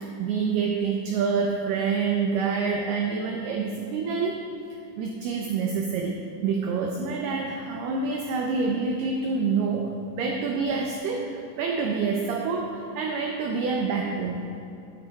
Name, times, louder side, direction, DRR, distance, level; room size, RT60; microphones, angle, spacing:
voice 1, 0.0-4.5 5.0-9.9 10.2-11.2 11.6-14.4, right 5 dB, 85° right, 1 dB, 2.2 m, -27 dB
11.5 x 9.1 x 4.0 m, 2.6 s
omnidirectional pair, 5.5 m